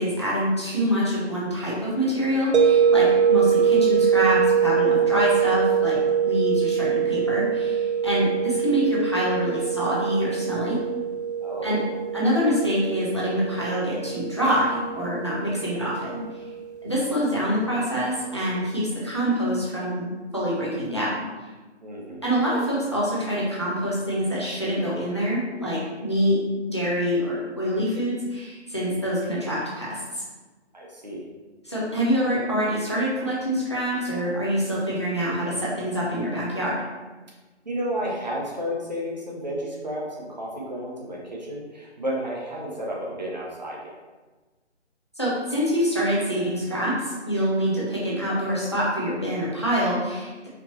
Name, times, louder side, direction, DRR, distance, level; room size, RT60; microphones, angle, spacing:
voice 1, 0.0-6.0 6.2-10.8 11.6-11.8 12.1-16.2 16.8-21.2 22.2-26.4 26.7-30.2 31.6-36.8 45.2-50.5, equal, 25° left, -7 dB, 0.6 m, -25 dB
sound 1, 2.5-17.5, right 7 dB, 70° right, 0.5 m, -24 dB
voice 2, 11.4-11.9 21.8-22.2 30.7-31.2 37.6-43.9, equal, 40° right, -3 dB, 0.8 m, -32 dB
4.4 x 2.7 x 2.8 m, 1.2 s
hypercardioid pair, 175°, 35 cm